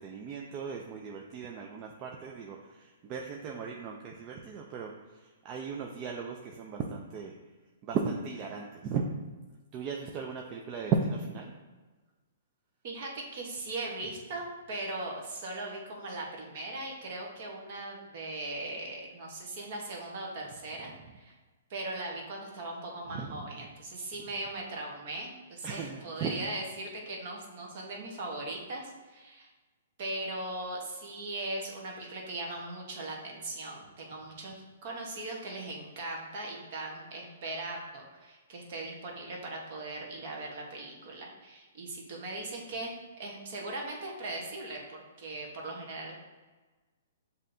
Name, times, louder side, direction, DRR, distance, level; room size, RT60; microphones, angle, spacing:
voice 1, 0.0-2.6 3.1-4.9 5.4-7.3 7.9-9.2 9.7-11.5 23.1-23.5 25.6-26.5, right 5 dB, 25° right, 1 dB, 0.3 m, -35 dB
voice 2, 12.8-21.3 21.7-29.5 30.0-42.9 43.2-46.1, right 2 dB, 45° right, -1 dB, 1.0 m, -39 dB
7.3 x 2.7 x 2.6 m, 1.3 s
hypercardioid pair, 160°, 0 cm